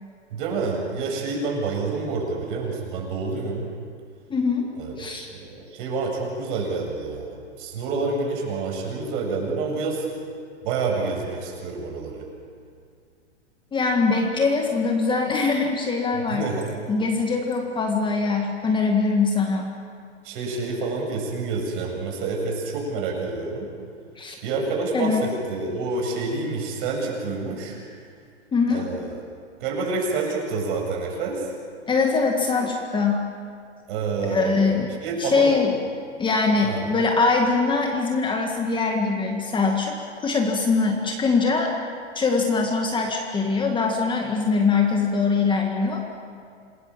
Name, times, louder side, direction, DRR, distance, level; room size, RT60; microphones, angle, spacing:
voice 1, 0.3-3.6 4.8-5.0 5.3-10.1 10.6-12.3 16.3-16.7 20.2-23.7 24.4-27.8 28.7-29.2 29.6-31.5 33.9-35.5 36.6-36.8, right 3 dB, 45° right, 0 dB, 7.9 m, -28 dB
voice 2, 4.3-4.7 5.0-5.3 13.7-16.4 16.9-19.7 24.2-24.4 24.9-25.3 28.5-28.9 31.9-33.2 34.3-34.9 35.2-35.7 36.2-40.0 40.2-41.7 42.2-46.0, left 4 dB, 15° left, 2 dB, 2.0 m, -22 dB
27.5 x 20.0 x 7.6 m, 2.3 s
hypercardioid pair, 130°, 36 cm